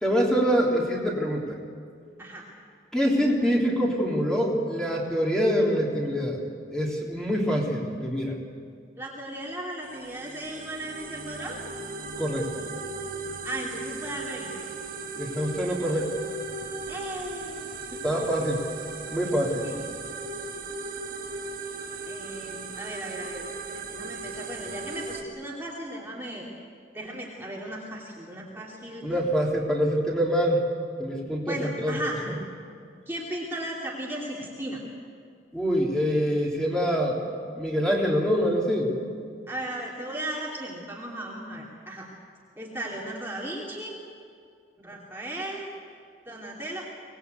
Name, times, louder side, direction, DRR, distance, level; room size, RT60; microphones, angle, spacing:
voice 1, 0.0-1.6 2.9-6.4 6.7-8.4 12.2-12.6 15.1-16.2 18.0-18.6 19.1-19.6 29.0-30.6 31.0-31.9 35.5-37.2 37.6-38.9, equal, 5° left, -3 dB, 3.3 m, -25 dB
voice 2, 9.0-11.6 13.4-14.7 16.9-17.7 18.0-18.1 19.6-19.8 20.5-20.6 22.0-26.5 26.9-29.1 31.5-32.2 33.1-34.8 39.5-42.1 42.6-44.0 44.8-45.7 46.3-46.9, right 1 dB, 10° right, -4 dB, 2.9 m, -36 dB
sound 1, 9.8-25.2, right 3 dB, 50° right, 1.8 m, -37 dB
25.0 x 19.5 x 8.2 m, 2.3 s
head